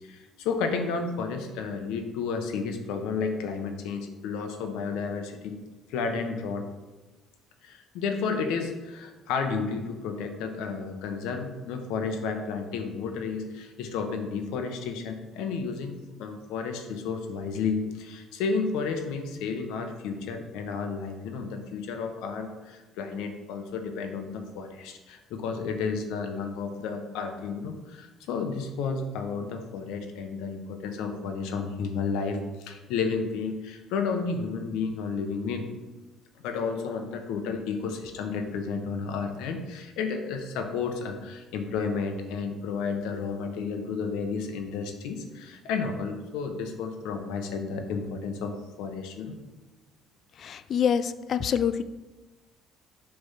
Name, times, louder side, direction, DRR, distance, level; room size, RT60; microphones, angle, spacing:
voice 1, 0.0-5.5 5.9-6.6 7.6-35.7 36.4-48.5 48.8-49.3, left 5 dB, 85° left, 5 dB, 0.9 m, -32 dB
voice 2, 50.4-51.8, left 8 dB, 55° left, 13 dB, 0.4 m, -26 dB
6.7 x 3.4 x 5.6 m, 1.2 s
cardioid pair, 90°, 0 cm